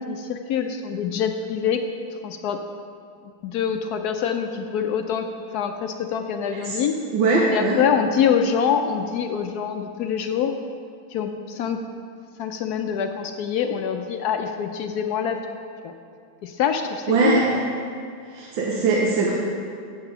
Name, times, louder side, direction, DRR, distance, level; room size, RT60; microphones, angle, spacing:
voice 1, 0.0-1.8 2.2-2.6 3.4-5.3 5.5-7.0 7.5-10.5 11.1-11.8 12.4-15.6 15.8-15.9 16.4-17.4 18.9-19.0, left 7 dB, 80° left, 5 dB, 0.8 m, -25 dB
voice 2, 6.5-6.8 7.1-7.8 17.1-17.6 18.3-19.3, right 3 dB, 75° right, -3 dB, 1.7 m, -21 dB
8.1 x 6.8 x 6.8 m, 2.4 s
omnidirectional pair, 2.2 m